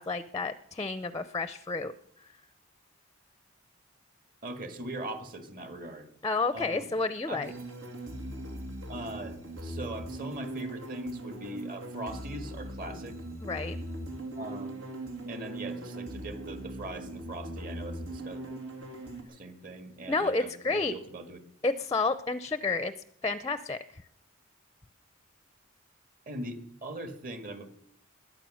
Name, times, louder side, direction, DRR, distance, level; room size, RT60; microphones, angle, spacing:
voice 1, 0.0-1.9 6.2-7.5 13.4-13.8 20.1-21.0 21.6-22.9 23.2-24.0, left 3 dB, 20° left, 12 dB, 0.5 m, -30 dB
voice 2, 4.4-6.1 6.5-6.9 7.3-7.4 8.9-13.2 14.4-14.8 15.3-18.4 19.3-21.4 26.3-27.8, right 1 dB, 45° right, 7 dB, 1.8 m, -40 dB
sound 1, 7.4-19.2, right 1 dB, 90° right, 2.9 m, -40 dB
21.5 x 9.1 x 6.3 m, 0.72 s
head